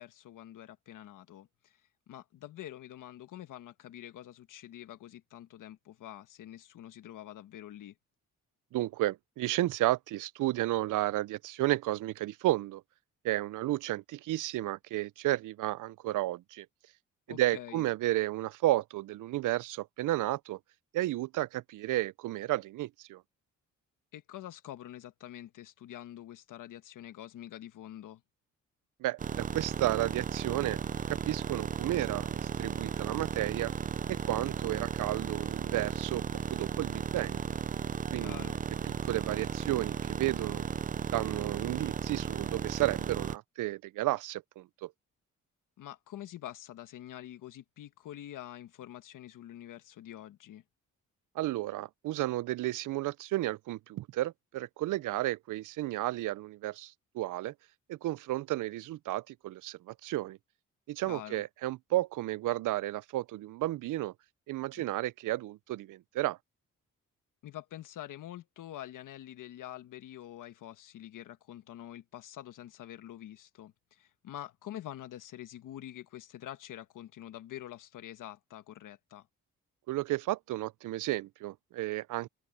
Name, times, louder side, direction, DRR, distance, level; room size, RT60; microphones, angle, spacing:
voice 1, 0.0-1.8 2.1-7.9 17.3-17.8 24.1-28.2 38.1-38.6 45.8-50.6 61.1-61.4 64.8-64.9 67.4-79.3, left 12 dB, 80° left, 1.4 m, -46 dB
voice 2, 8.7-12.8 13.2-16.7 17.3-20.6 20.9-23.2 29.0-30.8 31.1-33.7 34.1-36.2 36.5-37.5 38.1-38.5 38.9-40.7 41.1-44.9 51.4-57.5 57.9-60.4 60.9-64.1 64.5-66.4 79.9-82.3, right 16 dB, 75° right, 0.5 m, -32 dB
sound 1, 29.2-43.4, right 7 dB, 25° right, 0.4 m, -35 dB
open air
cardioid pair, 75°, 31 cm